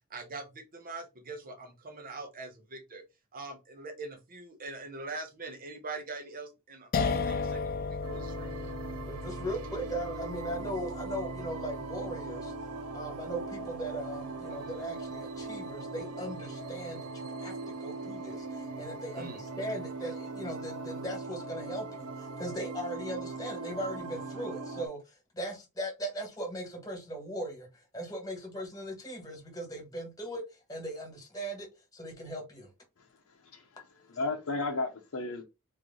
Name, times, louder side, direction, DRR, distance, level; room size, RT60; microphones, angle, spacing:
voice 1, 0.1-3.0 3.3-8.5 19.1-19.4, right 3 dB, 40° right, 1.0 m, -43 dB
sound 1, 6.9-13.9, left 4 dB, 40° left, 0.4 m, -36 dB
sound 2, 8.0-24.9, right 3 dB, 85° right, 0.6 m, -40 dB
voice 2, 9.1-12.5 12.9-30.4 30.7-32.7, right 1 dB, 15° left, 1.7 m, -39 dB
voice 3, 33.0-33.8 34.1-35.4, left 3 dB, 65° left, 0.8 m, -35 dB
3.2 x 3.2 x 3.8 m
head